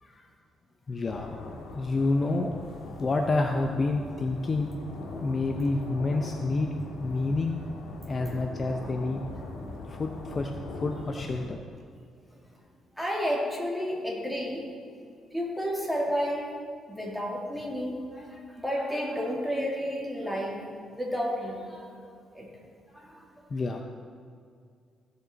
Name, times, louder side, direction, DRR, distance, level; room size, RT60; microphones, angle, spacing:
voice 1, 0.9-1.3 1.7-2.5 3.0-4.7 5.2-6.7 7.0-7.6 8.1-9.2 9.9-11.6 23.5-23.8, left 3 dB, 35° left, 3 dB, 0.7 m, -28 dB
sound 1, 1.0-11.5, left 2 dB, 75° left, 1.8 m, -41 dB
voice 2, 12.9-14.6 15.3-16.5 16.9-20.6 20.9-21.9 22.3-22.5 22.9-23.3, equal, ahead, -4 dB, 2.8 m, -31 dB
15.5 x 6.8 x 4.0 m, 2.3 s
cardioid pair, 90°, 0 cm